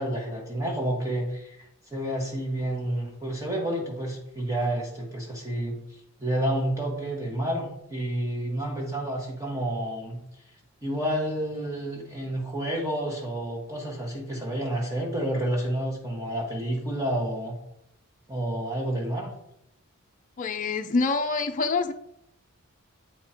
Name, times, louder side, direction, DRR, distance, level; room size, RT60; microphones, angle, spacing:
voice 1, 0.0-5.8 6.2-10.2 10.8-17.6 18.3-19.3, right 1 dB, 15° right, -2 dB, 1.2 m, -30 dB
voice 2, 20.4-21.9, left 4 dB, 35° left, 5 dB, 0.5 m, -26 dB
8.5 x 3.6 x 4.3 m, 0.80 s
head